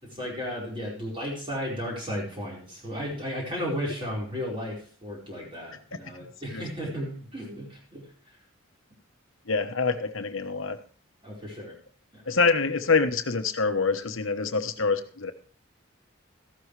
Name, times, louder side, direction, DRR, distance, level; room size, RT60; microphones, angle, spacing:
voice 1, 0.0-8.1 11.2-11.8 12.1-12.2, equal, 25° right, -4 dB, 4.7 m, -34 dB
voice 2, 9.5-10.8 12.3-15.3, left 4 dB, 70° left, 8 dB, 1.2 m, -25 dB
14.5 x 12.5 x 3.3 m, 0.43 s
head